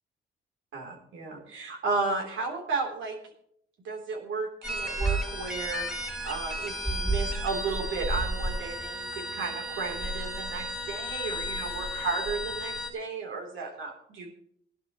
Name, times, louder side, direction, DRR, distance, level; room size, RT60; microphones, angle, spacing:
voice 1, 0.7-3.2 3.8-5.9 6.2-14.3, right 4 dB, 75° right, 1 dB, 3.6 m, -33 dB
sound 1, 4.6-12.9, right 1 dB, 5° right, 2.1 m, -32 dB
18.5 x 11.5 x 3.1 m, 0.67 s
cardioid pair, 90°, 20 cm